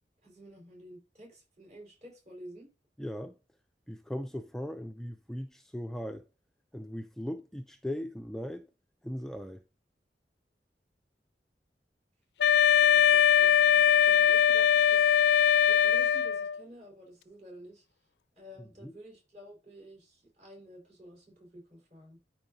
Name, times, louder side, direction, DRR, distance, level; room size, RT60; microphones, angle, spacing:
voice 1, 0.2-2.7 12.6-17.8 18.4-22.2, equal, 40° right, 4.5 m, -51 dB
voice 2, 3.0-3.3 3.9-6.2 6.7-8.6 9.0-9.6 18.6-18.9, equal, 5° left, 0.4 m, -38 dB
Wind instrument woodwind instrument, 12.4-16.6, left 9 dB, 70° left, 0.4 m, -22 dB
12.5 x 4.7 x 2.7 m
head